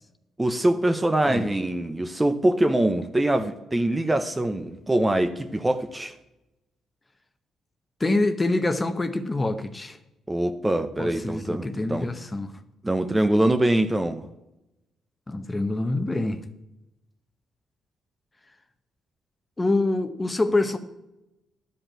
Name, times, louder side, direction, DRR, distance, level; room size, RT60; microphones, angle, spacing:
voice 1, 0.4-6.1 10.3-12.1 12.8-14.2, right 1 dB, 15° right, 0.8 m, -23 dB
voice 2, 8.0-10.0 11.0-12.5 15.3-16.4 19.6-20.8, left 2 dB, 20° left, 1.0 m, -25 dB
11.5 x 5.4 x 8.7 m
cardioid pair, 90°, 0 cm